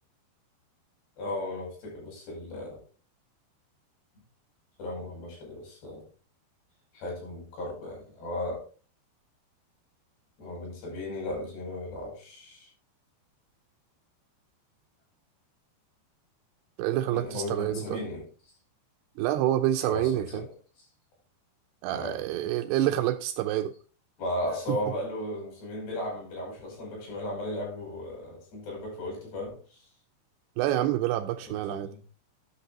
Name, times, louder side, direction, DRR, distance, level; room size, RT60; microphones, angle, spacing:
voice 1, 1.2-2.8 4.8-6.0 6.9-8.6 10.4-12.7 17.1-18.3 19.9-20.4 21.9-22.2 24.2-29.8 31.5-32.0, left 1 dB, 70° left, 7.2 m, -36 dB
voice 2, 16.8-18.0 19.2-20.4 21.8-23.7 24.7-24.8 30.6-31.9, right 13 dB, 85° right, 2.4 m, -27 dB
11.5 x 6.5 x 3.9 m
omnidirectional pair, 5.0 m